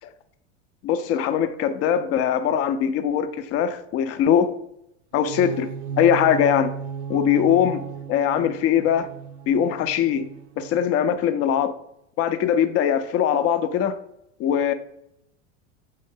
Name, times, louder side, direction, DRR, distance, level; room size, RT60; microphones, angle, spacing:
voice 1, 0.8-4.5 5.1-6.7 7.1-7.8 8.1-9.1 9.5-10.3 10.6-11.7 12.2-14.0 14.4-14.7, left 9 dB, 40° left, 0.5 m, -21 dB
sound 1, 5.1-11.1, right 7 dB, 40° right, 0.5 m, -35 dB
3.8 x 3.1 x 3.5 m
hypercardioid pair, 100°, 38 cm